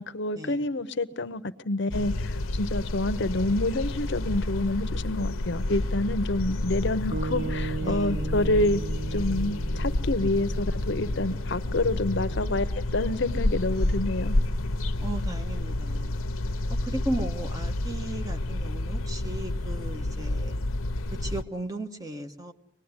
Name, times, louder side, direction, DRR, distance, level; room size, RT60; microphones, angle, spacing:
voice 1, 0.0-8.8 9.1-14.4, left 2 dB, 55° left, 0.9 m, -28 dB
sound 1, 1.9-21.4, left 1 dB, 85° left, 0.9 m, -29 dB
sound 2, 7.1-11.5, right 4 dB, 40° right, 1.4 m, -36 dB
voice 2, 7.8-8.3 15.0-16.2 16.8-20.6 21.1-22.5, right 1 dB, 15° right, 1.3 m, -36 dB
25.0 x 19.5 x 9.8 m
head